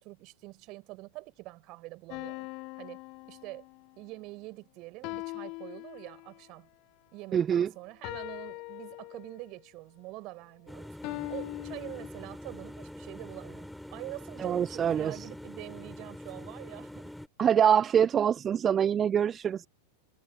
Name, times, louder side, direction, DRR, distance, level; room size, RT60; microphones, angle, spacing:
voice 1, 0.0-2.5 2.8-3.0 3.3-3.6 4.0-6.7 7.1-11.0 11.3-17.1, right 22 dB, 40° right, 4.2 m, -45 dB
sound 1, 2.1-3.9 5.0-6.5 8.0-9.6 11.0-12.1, left 26 dB, 40° left, 0.9 m, -41 dB
voice 2, 7.3-7.7 14.4-15.3 17.4-19.7, right 8 dB, 25° right, 0.7 m, -25 dB
sound 2, 10.7-17.3, left 1 dB, ahead, 3.4 m, -44 dB
figure-of-eight pair, 90°, 0 cm